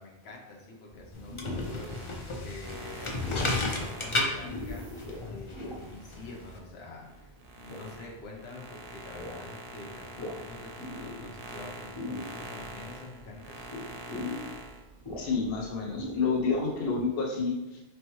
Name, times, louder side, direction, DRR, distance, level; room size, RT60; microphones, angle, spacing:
voice 1, 0.0-4.9 5.3-13.7, left 3 dB, 90° left, -1 dB, 1.0 m, -46 dB
sound 1, 0.9-17.0, left 1 dB, 20° left, 1.1 m, -43 dB
sound 2, 1.1-6.6, left 2 dB, 40° left, 0.5 m, -33 dB
sound 3, 1.5-6.5 7.0-14.8, right 2 dB, 65° right, 0.7 m, -45 dB
voice 2, 15.2-17.8, left 4 dB, 70° left, -1 dB, 0.9 m, -29 dB
4.1 x 3.1 x 3.0 m, 0.99 s
omnidirectional pair, 1.0 m